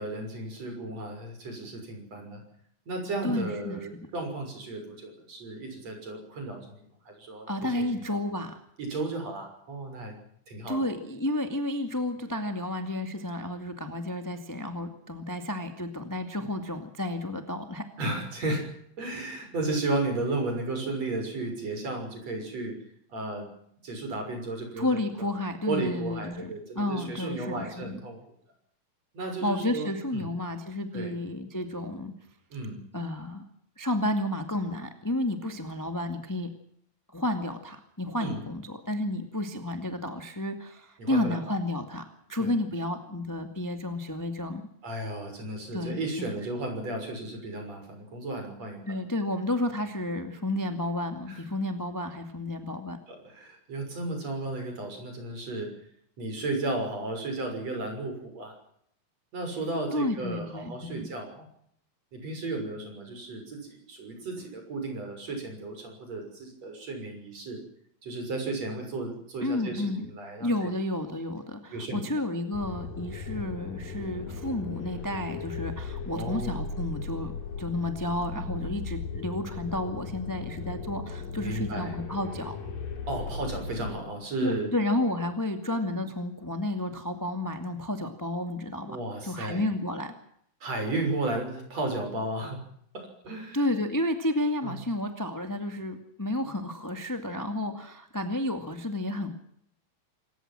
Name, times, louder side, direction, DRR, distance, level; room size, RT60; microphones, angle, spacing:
voice 1, 0.0-2.4 2.9-8.2 8.8-10.1 10.5-10.8 18.0-18.7 19.0-22.8 23.1-23.5 23.8-24.9 25.2-25.3 25.6-28.2 29.1-30.3 30.9-31.1 32.5-32.8 38.2-38.4 41.0-41.4 42.4-42.6 44.8-49.0 51.3-51.4 53.1-55.7 56.2-58.5 59.3-61.5 62.1-67.6 68.0-70.7 71.7-72.1 73.3-73.4 76.1-76.5 81.4-81.9 83.1-84.7 88.9-89.6 90.6-92.6 92.9-93.6 94.6-94.7, right 2 dB, 45° right, 4 dB, 7.4 m, -34 dB
voice 2, 3.2-3.9 7.5-8.6 10.7-17.8 24.8-28.0 29.2-32.1 32.9-33.4 33.8-36.5 37.1-44.6 45.7-46.3 48.8-53.0 59.9-61.1 69.4-70.1 70.4-77.3 77.6-82.6 84.4-89.0 89.2-90.1 93.5-99.4, left 1 dB, 10° left, 6 dB, 1.2 m, -31 dB
sound 1, 72.5-83.9, left 4 dB, 70° left, 4.9 m, -37 dB
27.0 x 15.5 x 7.7 m, 0.70 s
omnidirectional pair, 4.2 m